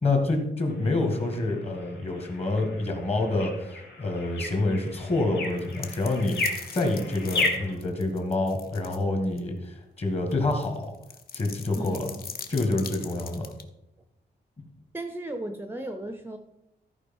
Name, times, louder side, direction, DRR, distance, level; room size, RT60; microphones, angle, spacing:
voice 1, 0.0-10.9 11.3-12.1 12.5-13.5, left 2 dB, 35° left, 3 dB, 1.9 m, -27 dB
sound 1, 0.7-7.7, left 2 dB, 75° left, 3.3 m, -34 dB
sound 2, 5.4-9.0 9.4-9.5 10.3-13.6, left 6 dB, 55° left, 0.8 m, -41 dB
voice 2, 11.7-12.2 14.9-16.4, right 1 dB, 10° right, 7 dB, 0.5 m, -35 dB
14.0 x 4.8 x 5.4 m, 0.88 s
wide cardioid pair, 165°, 18 cm